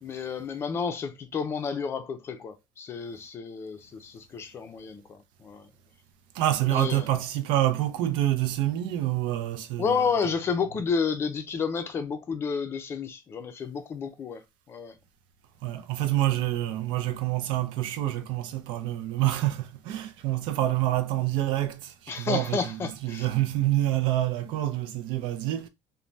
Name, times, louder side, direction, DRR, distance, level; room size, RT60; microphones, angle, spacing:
voice 1, 0.0-5.7 6.7-7.0 9.8-14.4 14.7-15.0 22.1-23.3, left 5 dB, 30° left, 0.4 m, -31 dB
voice 2, 6.4-10.0 15.6-25.7, right 14 dB, 70° right, 0.4 m, -27 dB
2.6 x 2.2 x 3.1 m
cardioid pair, 155°, 9 cm